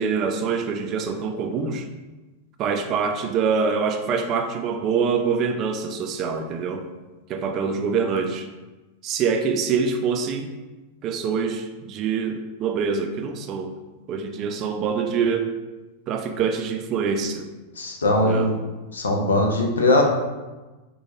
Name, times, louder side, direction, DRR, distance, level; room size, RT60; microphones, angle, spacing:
voice 1, 0.0-1.9 2.6-6.8 7.3-8.5 9.0-10.5 11.0-13.7 14.1-15.5 16.1-17.5 18.2-18.5, right 5 dB, 35° right, 6 dB, 0.3 m, -25 dB
voice 2, 17.8-18.6 18.9-20.0, left 2 dB, 70° left, 2 dB, 0.5 m, -20 dB
4.3 x 2.2 x 2.9 m, 1.2 s
figure-of-eight pair, 90°, 0 cm